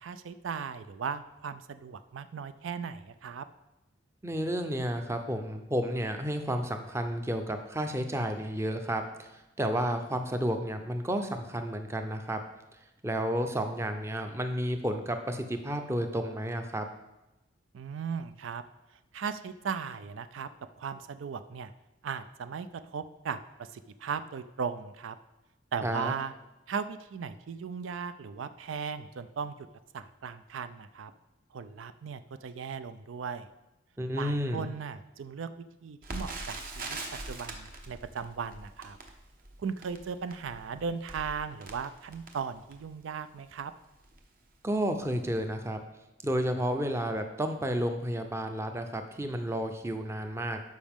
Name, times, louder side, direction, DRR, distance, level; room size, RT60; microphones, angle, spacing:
voice 1, 0.0-3.5 17.7-18.6 19.1-20.5 20.8-21.7 22.0-25.2 25.7-26.3 26.7-29.7 29.9-31.1 31.5-33.5 34.2-35.5 35.8-37.0 37.3-39.0 39.6-43.7, right 6 dB, 85° right, 12 dB, 0.4 m, -37 dB
voice 2, 4.2-12.4 13.0-16.8 25.8-26.1 34.0-34.7 44.6-45.8 46.2-50.6, equal, 15° right, 6 dB, 0.6 m, -31 dB
Crackle, 36.0-43.0 43.6-43.7 44.0-44.2 44.9-45.1 45.3-45.4, right 2 dB, 45° right, 1.0 m, -42 dB
12.0 x 5.2 x 3.6 m, 0.98 s
head